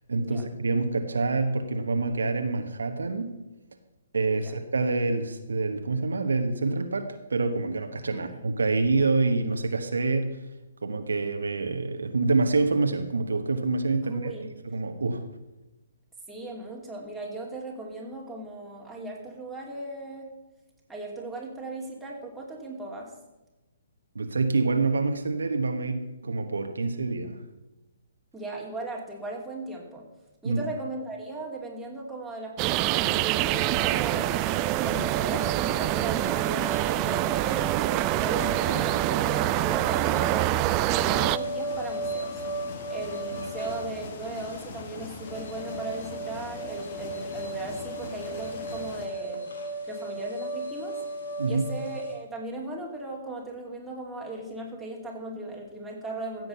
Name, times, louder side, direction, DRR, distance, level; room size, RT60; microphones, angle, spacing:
voice 1, 0.1-3.3 4.1-10.4 10.8-14.3 14.7-15.2 24.1-27.4 30.4-30.6 51.4-51.7, right 3 dB, 70° right, 6 dB, 1.2 m, -26 dB
voice 2, 14.0-14.5 16.3-20.3 20.9-23.1 28.3-30.1 30.4-34.4 34.8-37.7 38.1-42.3 42.9-49.4 49.8-51.0 51.4-56.5, right 2 dB, 5° right, -4 dB, 2.8 m, -38 dB
sound 1, 32.6-41.4, right 17 dB, 30° right, 0.3 m, -25 dB
sound 2, 33.3-52.2, right 2 dB, 65° left, 2.6 m, -36 dB
sound 3, 41.0-49.1, left 4 dB, 40° left, 1.7 m, -42 dB
15.5 x 7.8 x 5.5 m, 1.1 s
figure-of-eight pair, 130°, 0 cm